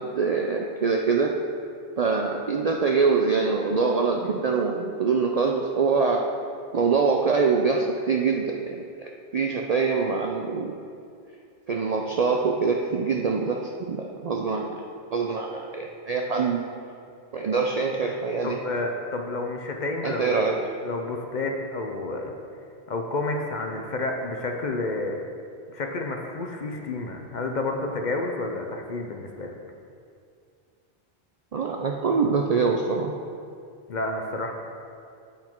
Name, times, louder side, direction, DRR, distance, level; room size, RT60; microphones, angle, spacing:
voice 1, 0.0-1.3 2.0-6.3 6.7-10.8 11.7-14.8 15.1-16.6 17.3-18.6 20.0-20.6 31.5-33.1, right 4 dB, 55° right, 1 dB, 0.4 m, -24 dB
voice 2, 18.4-22.3 22.9-25.2 25.7-29.5 33.9-34.5, left 2 dB, 50° left, 3 dB, 0.7 m, -30 dB
8.4 x 5.9 x 4.4 m, 2.4 s
omnidirectional pair, 1.2 m